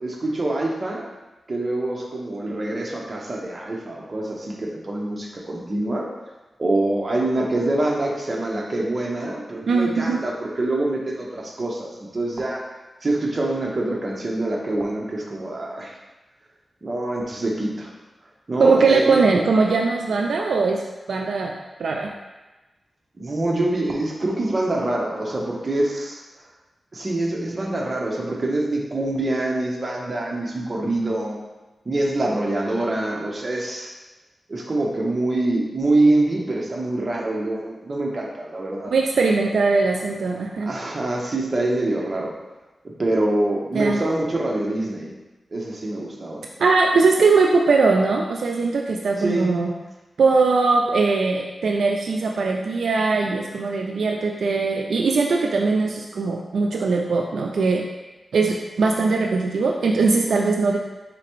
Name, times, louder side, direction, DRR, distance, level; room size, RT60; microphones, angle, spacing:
voice 1, 0.0-1.0 1.5-6.1 6.6-12.6 13.0-15.9 16.8-17.9 18.5-19.2 23.2-26.2 26.9-31.4 31.8-33.9 34.5-38.9 40.7-42.3 43.0-45.1 45.5-46.4 49.2-49.5, right 2 dB, 40° right, -2 dB, 0.9 m, -25 dB
voice 2, 9.7-10.2 18.6-20.8 21.1-21.5 21.8-22.1 38.9-40.7 43.7-44.0 46.6-49.7 50.2-57.8 58.3-60.8, right 4 dB, 85° right, 1 dB, 0.3 m, -20 dB
4.9 x 3.3 x 3.0 m, 1.1 s
wide cardioid pair, 80°, 0 cm